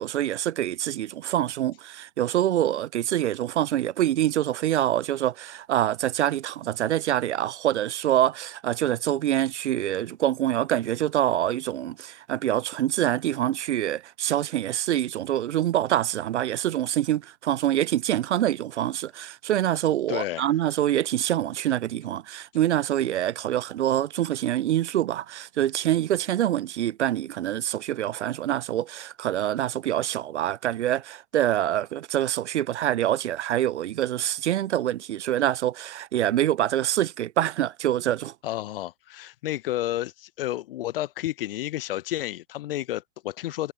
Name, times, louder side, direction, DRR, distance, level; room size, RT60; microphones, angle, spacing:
voice 1, 0.0-38.3, right 12 dB, 60° right, 0.5 m, -25 dB
voice 2, 20.1-20.5 38.4-43.7, left 14 dB, 45° left, 0.7 m, -31 dB
figure-of-eight pair, 100°, 39 cm